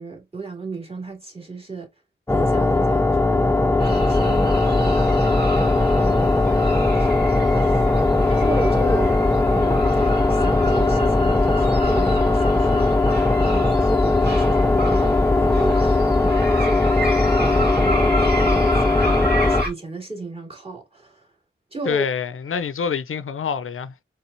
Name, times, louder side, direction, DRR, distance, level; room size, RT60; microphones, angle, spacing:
voice 1, 0.0-1.9 2.3-5.6 6.0-6.7 7.0-7.1 7.5-7.9 8.3-21.3 21.7-22.1, right 3 dB, 25° right, 2.5 m, -34 dB
sound 1, 2.3-19.6, left 2 dB, 15° left, 0.4 m, -19 dB
sound 2, 3.8-19.7, equal, 50° right, 2.0 m, -27 dB
voice 2, 21.9-24.0, left 6 dB, 80° left, 0.5 m, -26 dB
4.4 x 3.6 x 2.6 m
wide cardioid pair, 75°, 21 cm